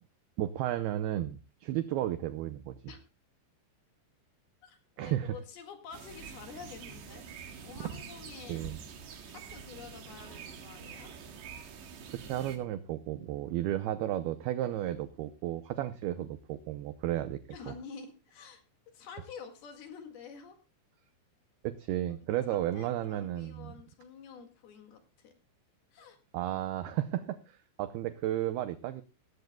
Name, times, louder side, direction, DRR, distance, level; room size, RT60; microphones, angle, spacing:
voice 1, 0.4-2.8 5.0-5.3 8.5-8.8 12.1-17.4 17.7-17.8 21.6-23.7 26.3-29.0, right 13 dB, 90° right, 11 dB, 2.2 m, -33 dB
voice 2, 4.6-7.2 7.6-8.7 9.3-11.1 17.5-18.6 18.9-20.6 22.2-25.4 25.9-26.2, left 6 dB, 60° left, 5 dB, 3.5 m, -49 dB
sound 1, 5.9-12.6, right 6 dB, 70° right, 3.8 m, -46 dB
18.5 x 14.5 x 2.3 m, 0.29 s
omnidirectional pair, 5.4 m